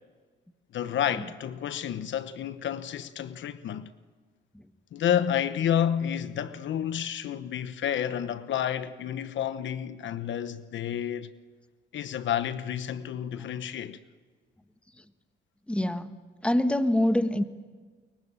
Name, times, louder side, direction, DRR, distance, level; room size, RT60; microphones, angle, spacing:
voice 1, 0.7-3.9 4.9-11.3 11.9-14.0, left 9 dB, 70° left, 1.1 m, -30 dB
voice 2, 15.7-17.4, left 1 dB, 5° left, 1.4 m, -26 dB
29.0 x 23.0 x 8.9 m
cardioid pair, 90°, 20 cm